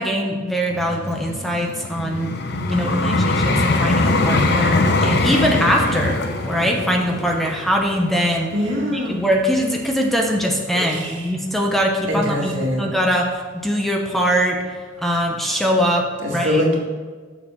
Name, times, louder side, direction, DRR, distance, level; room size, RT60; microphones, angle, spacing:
voice 1, 0.0-2.4 2.7-8.5 8.9-12.5 12.8-14.6 15.0-16.6, equal, ahead, 1 dB, 0.8 m, -22 dB
Vehicle, 0.7-9.8 10.4-10.6, left 2 dB, 60° left, 0.7 m, -22 dB
voice 2, 2.5-3.2 8.5-9.2 10.7-11.2 12.1-12.9 16.2-16.8, equal, 70° right, -1 dB, 1.8 m, -24 dB
7.1 x 6.5 x 5.5 m, 1.4 s
head